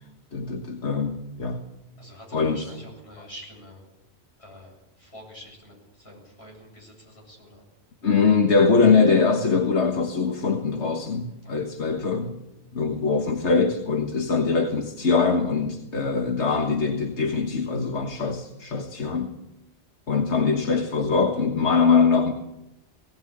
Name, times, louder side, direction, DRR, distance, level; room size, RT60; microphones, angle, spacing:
voice 1, 0.3-1.7 2.3-2.6 3.2-3.3 8.0-12.4 12.7-19.3 20.1-22.3, left 4 dB, 90° left, 4 dB, 1.8 m, -22 dB
voice 2, 2.0-3.8 4.4-7.7 11.4-11.7, equal, 70° left, -1 dB, 8.1 m, -46 dB
19.5 x 18.0 x 8.7 m, 0.92 s
omnidirectional pair, 1.1 m